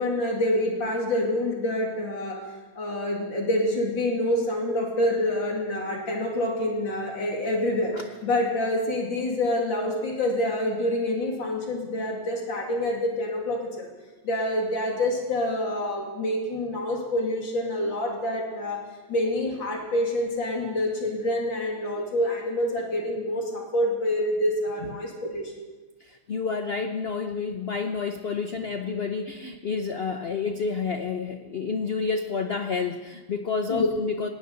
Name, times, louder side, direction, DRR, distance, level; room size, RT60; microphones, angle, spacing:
voice 1, 0.0-2.4 2.7-7.9 8.2-13.9 14.2-18.8 19.1-25.5 33.7-33.9, left 1 dB, 75° left, -1 dB, 3.2 m, -27 dB
voice 2, 26.0-34.3, left 5 dB, 60° left, 7 dB, 0.6 m, -29 dB
19.0 x 18.0 x 4.0 m, 1.3 s
omnidirectional pair, 2.0 m